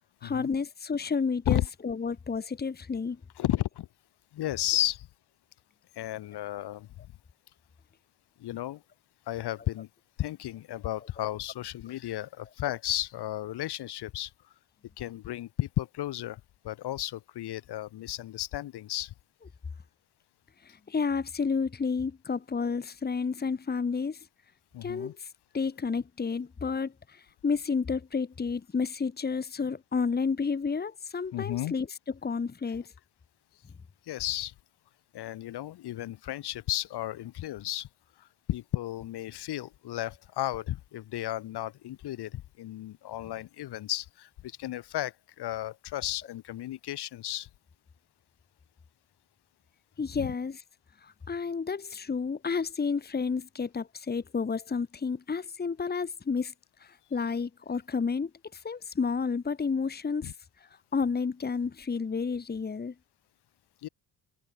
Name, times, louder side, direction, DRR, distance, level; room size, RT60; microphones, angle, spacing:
voice 1, 0.2-3.2 11.2-11.3 20.6-24.3 24.8-25.3 25.5-31.9 32.2-32.8 50.0-50.6 51.0-56.5 56.8-60.3 60.6-62.9, left 5 dB, 25° left, 1.8 m, -31 dB
voice 2, 3.4-3.9 4.3-5.1 5.9-7.1 8.4-8.8 9.3-9.9 10.2-14.3 15.0-19.1 24.7-25.1 31.3-31.7 34.1-34.5 35.1-37.9 38.2-47.5 50.1-50.3 60.2-60.3 63.8-63.9, left 14 dB, 80° left, 3.2 m, -33 dB
cardioid pair, 120°, 40 cm